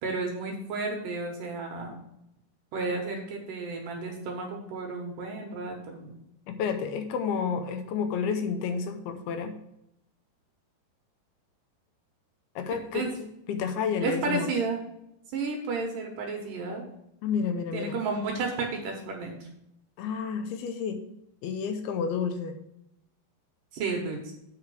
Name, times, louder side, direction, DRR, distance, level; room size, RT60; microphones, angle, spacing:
voice 1, 0.0-1.9 2.7-6.1 12.9-13.1 14.0-14.9 15.3-16.8 17.7-19.4 23.7-24.3, right 3 dB, 65° right, 1 dB, 2.4 m, -32 dB
voice 2, 6.5-9.6 12.6-14.5 17.2-18.0 20.0-21.0 21.4-22.6, left 6 dB, 80° left, 7 dB, 2.5 m, -30 dB
8.3 x 5.0 x 6.2 m, 0.81 s
omnidirectional pair, 4.7 m